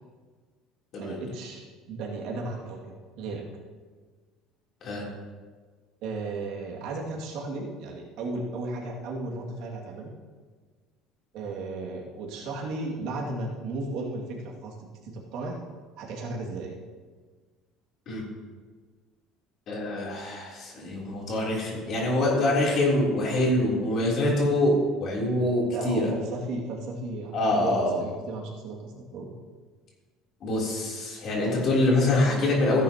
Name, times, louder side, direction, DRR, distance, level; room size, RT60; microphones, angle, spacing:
voice 1, 1.0-3.4 6.0-10.1 11.3-14.7 15.1-15.6 16.0-16.7 25.7-29.3, right 2 dB, 60° right, -2 dB, 2.3 m, -35 dB
voice 2, 19.7-26.1 27.3-28.0 30.4-32.8, left 1 dB, 40° left, -3 dB, 3.4 m, -25 dB
16.0 x 10.5 x 3.0 m, 1.5 s
cardioid pair, 165°, 0 cm